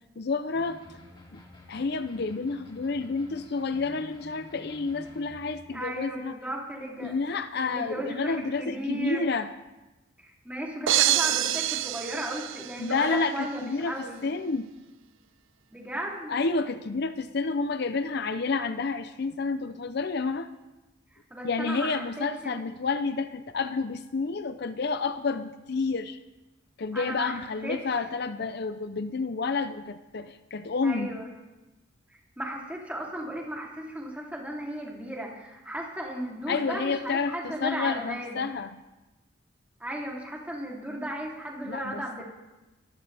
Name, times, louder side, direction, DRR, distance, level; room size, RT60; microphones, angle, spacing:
voice 1, 0.2-0.8 1.3-1.4 1.7-6.4 7.0-9.5 12.8-14.7 16.3-20.5 21.4-26.2 26.8-31.2 36.5-38.8 41.6-42.2, left 4 dB, 55° left, 11 dB, 0.6 m, -30 dB
sound 1, 0.5-5.6, left 1 dB, 25° left, 2.7 m, -50 dB
voice 2, 5.7-7.2 7.6-9.2 10.2-14.2 15.7-16.3 21.1-22.6 26.9-27.8 30.8-31.3 32.4-38.5 39.8-42.2, right 1 dB, 10° right, -2 dB, 3.0 m, -35 dB
sound 2, 10.9-13.1, right 13 dB, 75° right, 0.5 m, -26 dB
23.0 x 15.0 x 3.4 m, 1.1 s
head